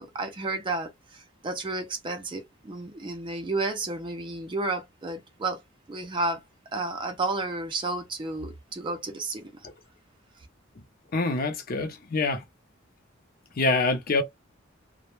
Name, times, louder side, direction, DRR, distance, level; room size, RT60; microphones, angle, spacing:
voice 1, 0.0-5.6 5.9-6.4 6.7-9.7, right 2 dB, 25° right, 0.4 m, -32 dB
voice 2, 11.1-12.4 13.6-14.2, left 3 dB, 45° left, 0.5 m, -25 dB
2.1 x 2.1 x 2.9 m
head